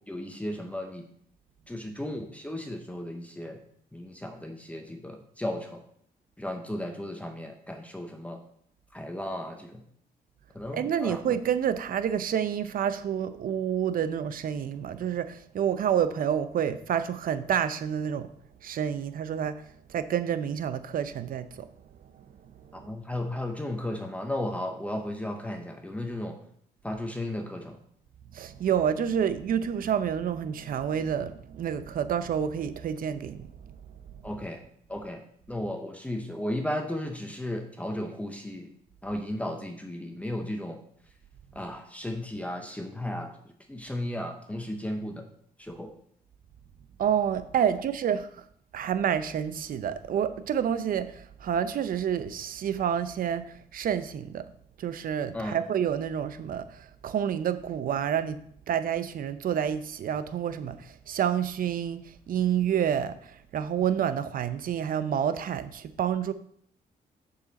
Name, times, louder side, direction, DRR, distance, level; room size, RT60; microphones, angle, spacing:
voice 1, 0.1-1.0 1.7-3.5 3.9-5.1 5.4-5.6 6.4-8.4 8.9-9.5 10.6-11.2 22.9-26.3 26.8-27.6 34.2-34.6 34.9-35.2 35.5-38.6 39.0-40.8 41.6-43.3 43.7-45.1 45.8-45.9 55.3-55.6, left 1 dB, 10° left, 0.9 m, -34 dB
voice 2, 10.7-18.3 18.6-19.6 19.9-21.7 28.3-33.5 47.0-48.3 48.7-54.4 54.8-58.4 58.7-62.0 62.3-66.3, right 8 dB, 65° right, 0.6 m, -28 dB
6.6 x 6.5 x 4.2 m
cardioid pair, 110°, 16 cm